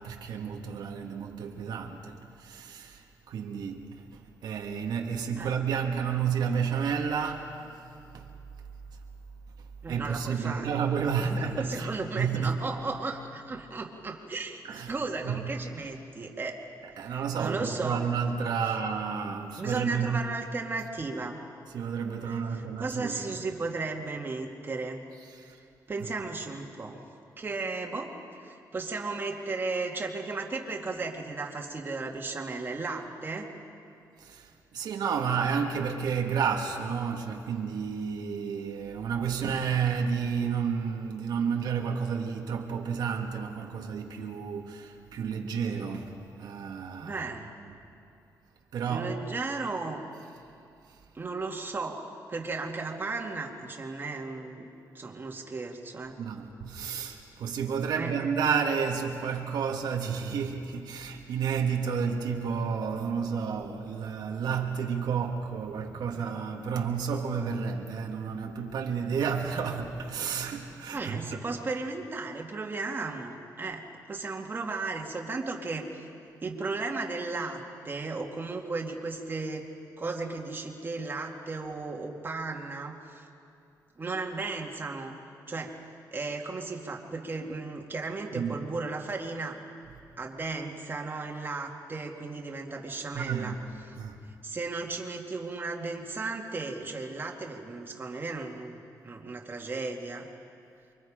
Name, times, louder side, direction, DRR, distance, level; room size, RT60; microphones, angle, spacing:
voice 1, 0.0-7.7 8.1-8.3 9.6-11.9 12.2-12.7 14.6-14.9 15.2-15.5 16.8-20.3 21.7-23.4 25.3-25.6 34.2-47.3 47.7-47.9 48.7-49.2 50.9-51.0 56.2-71.4 88.3-88.6 93.1-93.6 93.9-94.2, right 6 dB, 75° right, 1.8 m, -31 dB
voice 2, 9.8-10.7 11.2-16.6 17.1-18.0 19.6-21.4 22.8-25.0 25.9-27.0 27.4-28.1 28.4-33.5 47.0-47.5 48.9-50.0 51.1-52.0 52.3-54.7 54.9-56.2 58.0-58.1 70.9-73.8 74.1-75.9 76.4-77.6 77.8-79.7 80.0-83.2 84.0-85.2 85.5-85.8 86.1-89.6 90.2-93.6 94.4-98.8 99.0-100.3, right 3 dB, 30° right, 2.3 m, -35 dB
29.0 x 24.0 x 5.1 m
cardioid pair, 110°, 7 cm